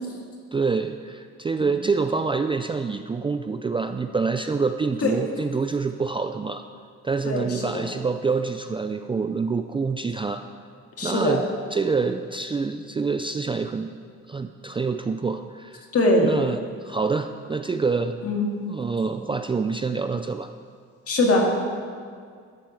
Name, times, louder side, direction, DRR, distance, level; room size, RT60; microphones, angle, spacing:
voice 1, 0.5-6.6 7.0-10.4 11.0-11.4 11.7-13.9 14.3-15.8 16.2-18.2 18.7-20.5, right 4 dB, 20° right, 7 dB, 0.3 m, -26 dB
voice 2, 7.3-7.9 11.0-11.4 15.9-16.3 18.2-18.5 21.1-21.6, left 1 dB, 50° left, 0 dB, 1.9 m, -22 dB
12.0 x 4.6 x 7.0 m, 2.1 s
cardioid pair, 90°, 30 cm